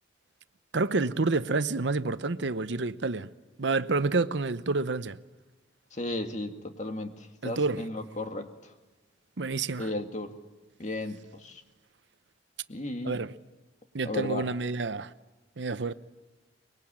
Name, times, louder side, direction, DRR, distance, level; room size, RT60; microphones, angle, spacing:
voice 1, 0.7-3.3 3.6-5.2 7.4-7.8 9.4-9.9 13.0-13.3 13.9-15.1 15.6-15.9, right 3 dB, 70° right, 0.8 m, -28 dB
voice 2, 5.9-8.7 9.8-10.3 10.8-11.6 12.7-13.2 14.0-14.5, left 2 dB, 40° left, 2.0 m, -35 dB
24.5 x 22.0 x 8.8 m
head